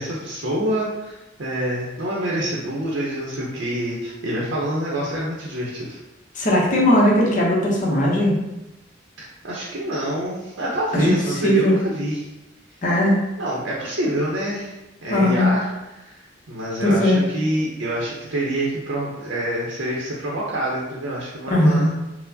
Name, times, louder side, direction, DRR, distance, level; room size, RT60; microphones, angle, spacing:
voice 1, 0.0-6.0 9.2-12.3 13.4-14.8 15.0-22.0, right 1 dB, 75° right, -4 dB, 0.6 m, -26 dB
voice 2, 6.4-8.4 10.9-11.0 11.4-11.8 12.8-13.2 15.1-15.5 16.8-17.2 21.5-21.9, left 1 dB, 40° left, -3 dB, 0.7 m, -18 dB
4.4 x 2.0 x 2.6 m, 0.98 s
head